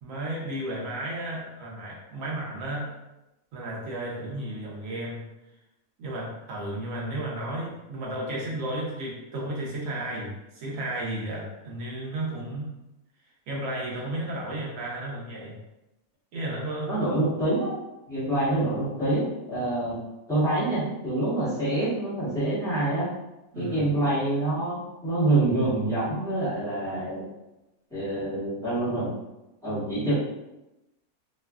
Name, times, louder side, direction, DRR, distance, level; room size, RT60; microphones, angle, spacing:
voice 1, 0.0-2.9 3.5-5.2 6.0-12.7 13.5-15.6 16.3-17.0 23.5-23.9, right 1 dB, 65° right, -4 dB, 1.1 m, -33 dB
voice 2, 16.9-17.7 18.1-20.0 20.3-23.1 23.5-27.2 27.9-29.1 29.6-30.1, right 2 dB, 5° left, -11 dB, 1.0 m, -26 dB
3.1 x 2.3 x 2.3 m, 0.95 s
omnidirectional pair, 1.6 m